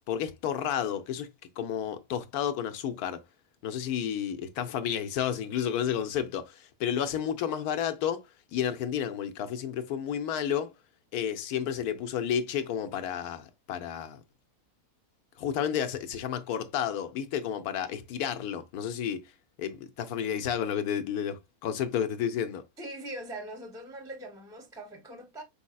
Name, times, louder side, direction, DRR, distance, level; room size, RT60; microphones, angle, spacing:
voice 1, 0.1-1.3 1.6-3.2 3.6-8.2 8.5-10.7 11.1-14.2 15.4-19.2 19.6-22.6, left 9 dB, 75° left, 1.2 m, -31 dB
voice 2, 22.8-25.4, right 1 dB, 5° right, 0.6 m, -41 dB
5.4 x 4.2 x 2.3 m
omnidirectional pair, 1.6 m